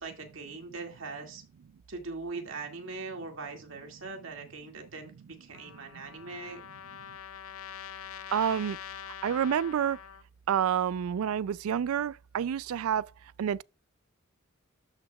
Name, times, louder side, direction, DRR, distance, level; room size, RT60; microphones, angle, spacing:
voice 1, 0.0-1.4 1.9-6.6, right 3 dB, 65° right, 2.2 m, -41 dB
Trumpet, 5.5-10.2, left 9 dB, 85° left, 0.6 m, -44 dB
voice 2, 8.3-8.8 9.2-10.0 10.5-13.1 13.4-13.6, right 8 dB, 85° right, 0.3 m, -28 dB
12.5 x 5.8 x 2.3 m
head